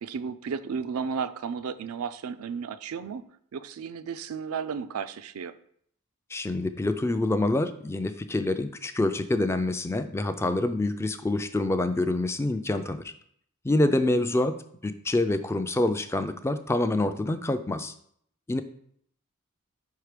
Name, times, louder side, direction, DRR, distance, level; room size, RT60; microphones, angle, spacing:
voice 1, 0.0-5.5 14.0-14.3, right 6 dB, 85° right, 12 dB, 0.4 m, -34 dB
voice 2, 6.3-13.1 13.6-14.6 14.8-17.9 18.5-18.6, left 2 dB, 10° left, 10 dB, 0.3 m, -26 dB
5.1 x 4.6 x 5.0 m, 0.66 s
head